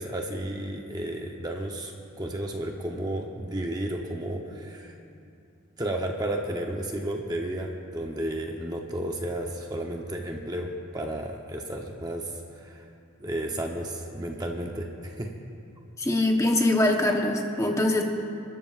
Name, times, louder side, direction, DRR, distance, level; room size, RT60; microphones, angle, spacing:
voice 1, 0.0-1.9 2.2-5.0 5.8-12.9 13.2-15.3, right 1 dB, 20° right, 1 dB, 0.8 m, -32 dB
voice 2, 16.0-18.0, left 1 dB, 15° left, 2 dB, 1.0 m, -23 dB
30.0 x 13.0 x 2.5 m, 2.6 s
head